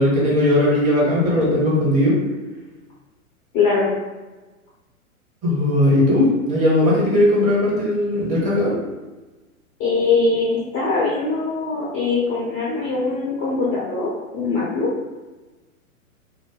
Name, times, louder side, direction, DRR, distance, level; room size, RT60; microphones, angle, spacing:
voice 1, 0.0-2.1 5.4-8.7, left 1 dB, 15° right, -6 dB, 1.0 m, -18 dB
voice 2, 3.5-3.9 9.8-14.9, left 4 dB, 20° left, -7 dB, 0.5 m, -22 dB
2.6 x 2.5 x 3.6 m, 1.2 s
figure-of-eight pair, 115°, 43 cm